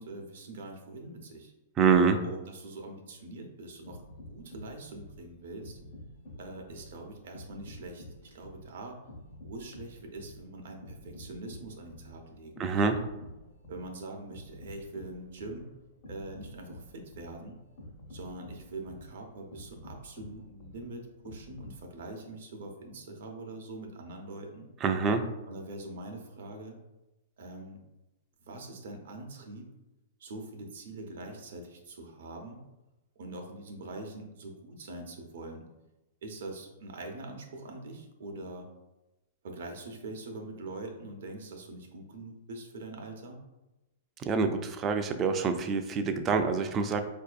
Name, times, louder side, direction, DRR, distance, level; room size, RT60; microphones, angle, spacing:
voice 1, 0.0-1.5 2.2-4.0 4.3-5.8 6.4-8.0 8.3-9.0 9.4-13.0 13.7-15.7 16.0-17.6 18.1-24.7 25.5-26.8 27.4-27.8 28.4-29.7 30.2-32.6 33.2-35.7 36.2-38.7 39.4-43.4, right 2 dB, 75° right, 2 dB, 0.7 m, -43 dB
voice 2, 1.8-2.2 12.6-12.9 24.8-25.2 44.2-47.0, right 5 dB, 25° right, 7 dB, 0.3 m, -26 dB
sound 1, 3.7-21.8, left 1 dB, 55° left, 0.8 m, -49 dB
4.4 x 2.6 x 2.4 m, 1.0 s
hypercardioid pair, 140°, 0 cm